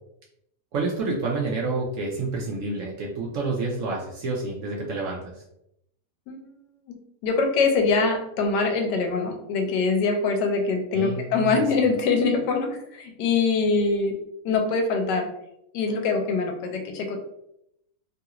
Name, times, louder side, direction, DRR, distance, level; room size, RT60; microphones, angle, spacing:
voice 1, 0.7-5.3 10.9-11.6, right 3 dB, 70° right, -2 dB, 0.7 m, -29 dB
voice 2, 7.2-14.2 14.4-15.3 15.7-17.2, left 4 dB, 80° left, 4 dB, 1.2 m, -23 dB
3.1 x 2.4 x 2.8 m, 0.79 s
omnidirectional pair, 1.8 m